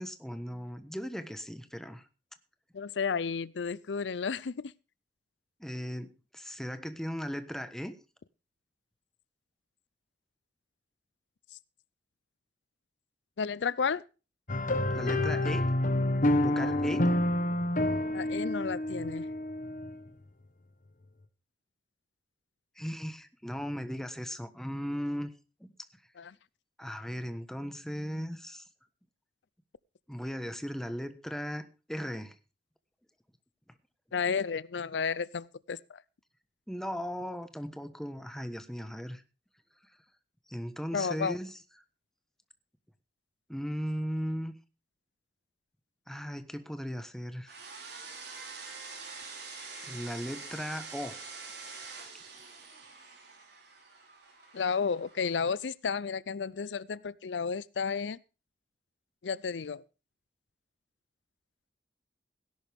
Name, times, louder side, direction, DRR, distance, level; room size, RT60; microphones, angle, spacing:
voice 1, 0.0-2.0 5.6-7.9 14.9-15.7 16.4-17.1 22.8-25.3 25.6-25.7 26.8-28.6 30.1-32.3 36.7-39.2 40.5-41.5 43.5-44.5 46.1-47.6 49.9-51.2, equal, 5° left, 1.2 m, -37 dB
voice 2, 2.7-4.7 13.4-14.0 18.1-19.3 26.2-26.3 34.1-36.0 40.9-41.4 54.5-58.2 59.2-59.8, left 5 dB, 85° left, 0.5 m, -32 dB
sound 1, 14.5-20.1, left 1 dB, 50° left, 1.3 m, -28 dB
sound 2, 47.5-55.6, right 4 dB, 65° right, 5.6 m, -46 dB
17.5 x 11.0 x 3.5 m
head